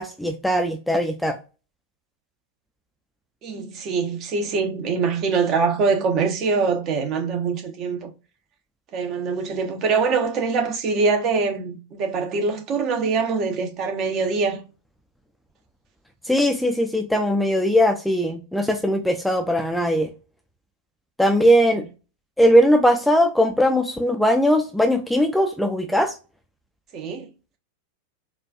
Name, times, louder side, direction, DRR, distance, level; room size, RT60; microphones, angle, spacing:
voice 1, 0.0-1.4 16.3-20.1 21.2-21.8 22.4-26.1, equal, ahead, 0.4 m, -19 dB
voice 2, 3.4-8.1 8.9-14.6 26.9-27.3, right 4 dB, 35° right, 0.8 m, -23 dB
4.2 x 2.4 x 2.3 m
figure-of-eight pair, 90°, 0 cm